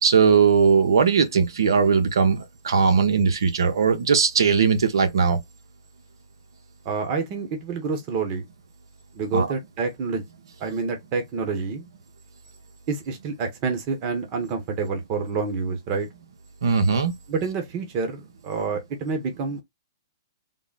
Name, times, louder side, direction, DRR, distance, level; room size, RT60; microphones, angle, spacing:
voice 1, 0.0-5.4 9.3-9.5 16.6-17.1, right 5 dB, 80° right, 1.0 m, -19 dB
voice 2, 6.8-8.4 9.1-10.3 10.6-11.9 12.9-16.1 17.3-19.6, right 4 dB, 35° right, 1.0 m, -28 dB
3.8 x 2.1 x 3.9 m
hypercardioid pair, 150°, 2 cm